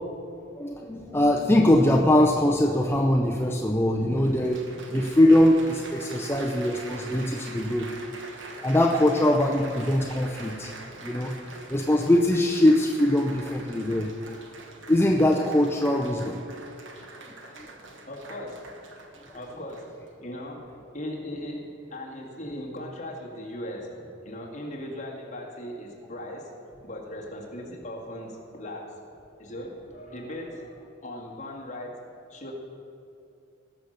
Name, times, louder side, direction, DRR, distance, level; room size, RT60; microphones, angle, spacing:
voice 1, 0.6-7.9 8.5-10.7 11.0-11.4 11.7-14.1 14.9-16.5 17.3-17.4, left 1 dB, 10° left, 0 dB, 0.5 m, -22 dB
Applause, 4.2-20.1 20.8-21.2, right 3 dB, 70° right, 1.3 m, -44 dB
voice 2, 17.7-18.8 19.3-26.6 26.8-29.0 29.4-32.0 32.3-32.5, left 1 dB, 35° left, -2 dB, 2.2 m, -38 dB
19.0 x 6.7 x 5.8 m, 2.7 s
head